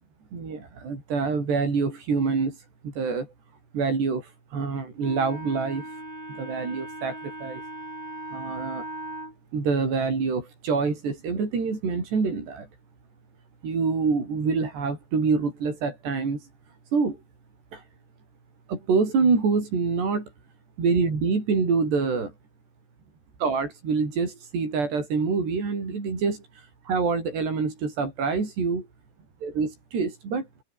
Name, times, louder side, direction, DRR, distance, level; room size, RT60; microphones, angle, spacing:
voice 1, 0.3-2.6 2.8-3.3 3.7-5.8 6.4-7.6 8.3-8.9 9.5-12.7 13.6-16.5 16.9-17.2 17.7-17.8 18.7-20.3 20.8-22.3 23.4-28.9 29.4-30.5, right 4 dB, 80° right, 9.3 m, -26 dB
Wind instrument woodwind instrument, 5.0-9.3, right 1 dB, 10° right, 6.4 m, -38 dB
omnidirectional pair, 4.7 m